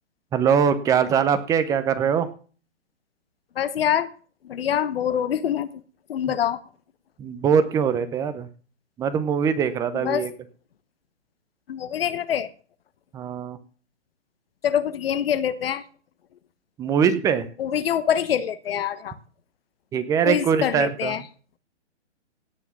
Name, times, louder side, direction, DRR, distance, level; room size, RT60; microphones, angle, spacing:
voice 1, 0.3-2.3 7.2-8.5 9.0-10.3 13.1-13.6 16.8-17.5 19.9-21.1, right 7 dB, 10° right, 12 dB, 0.7 m, -22 dB
voice 2, 3.6-4.1 4.4-5.8 6.1-6.6 9.9-10.2 11.7-12.5 14.6-15.8 17.6-19.1 20.2-21.2, left 9 dB, 55° left, 14 dB, 1.1 m, -25 dB
17.5 x 6.1 x 6.1 m, 0.40 s
hypercardioid pair, 140°, 35 cm